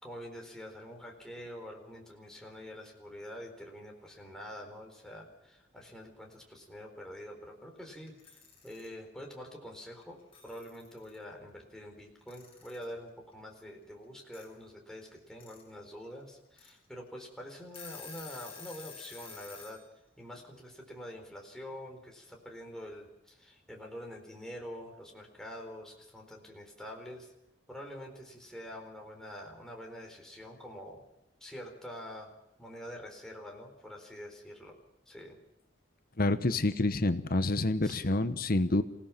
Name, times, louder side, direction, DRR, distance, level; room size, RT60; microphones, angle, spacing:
voice 1, 0.0-19.9 20.2-27.3 27.7-31.0 31.4-32.3 32.6-34.8 35.1-35.4 37.8-38.0, equal, 5° left, 0 dB, 4.2 m, -46 dB
Alarm / Clock, 8.1-8.9 10.0-10.1 10.3-11.2 12.3-12.9 14.3-14.4 15.2-15.6 16.0-16.1 16.6-16.7 17.2-17.3 17.6-19.8, left 6 dB, 30° left, 7.6 m, -49 dB
voice 2, 36.2-38.8, left 2 dB, 50° left, 11 dB, 1.1 m, -28 dB
27.5 x 17.5 x 5.9 m, 0.90 s
head